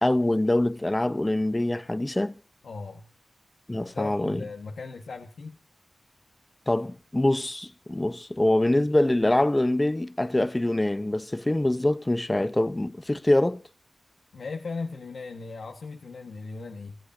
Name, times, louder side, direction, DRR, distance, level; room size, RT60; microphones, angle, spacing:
voice 1, 0.0-2.3 3.7-4.4 6.7-13.6, left 1 dB, 25° left, 0.9 m, -24 dB
voice 2, 2.6-3.0 3.9-5.6 14.3-17.0, left 4 dB, 85° left, 1.6 m, -37 dB
29.5 x 14.5 x 2.8 m
cardioid pair, 50°, 0 cm